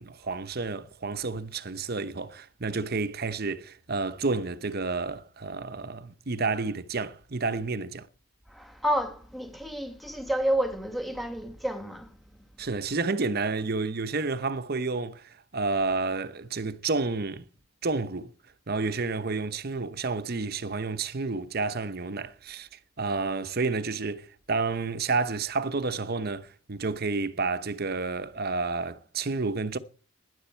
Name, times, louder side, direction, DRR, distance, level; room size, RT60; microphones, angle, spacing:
voice 1, 0.0-8.1 12.6-17.4 17.8-18.3 18.7-29.8, right 3 dB, 50° right, 0.9 m, -30 dB
voice 2, 8.5-12.1, right 1 dB, ahead, 1.9 m, -30 dB
17.5 x 11.0 x 4.5 m
head